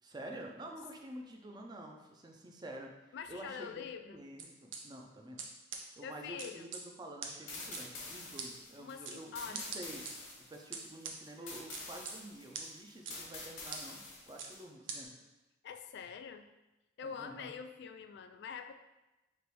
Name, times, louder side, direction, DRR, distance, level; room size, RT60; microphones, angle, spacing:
voice 1, 0.0-5.4 6.0-10.0 10.4-14.0 14.3-15.1 17.0-17.5, right 1 dB, 20° right, 2 dB, 0.5 m, -49 dB
voice 2, 3.1-4.2 6.0-6.7 8.8-9.7 15.6-16.5 17.0-18.7, left 6 dB, 60° left, 9 dB, 0.3 m, -45 dB
sound 1, 4.4-4.8 5.4-5.5 5.7-5.8 6.4-6.8 7.2-7.3 7.7-7.8 8.4-8.5 9.1-9.2 9.5-10.1 10.7-11.2 11.7-12.1 12.5-12.7 13.1-13.2 13.7-13.8 14.4-14.5 14.9-15.0, right 6 dB, 70° right, 0.6 m, -41 dB
sound 2, 7.5-14.6, left 3 dB, 85° left, 1.2 m, -48 dB
3.3 x 3.0 x 4.5 m, 1.0 s
head